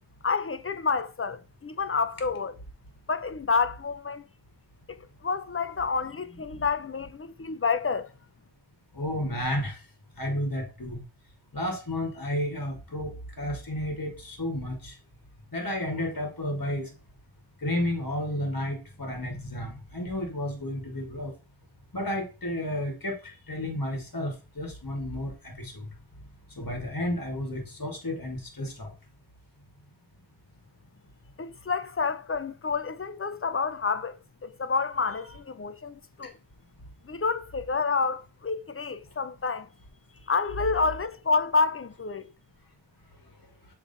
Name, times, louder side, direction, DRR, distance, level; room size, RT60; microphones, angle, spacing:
voice 1, 0.2-2.6 3.1-4.2 4.9-5.0 5.2-8.1 31.4-36.3 37.0-39.7 40.3-42.3, left 4 dB, 30° left, 0.6 m, -29 dB
voice 2, 8.9-9.8 10.2-11.0 11.5-15.0 15.5-16.9 17.6-21.3 21.9-25.9 26.6-28.9, left 1 dB, 45° left, 1.8 m, -32 dB
7.1 x 3.3 x 4.0 m
wide cardioid pair, 45°, 46 cm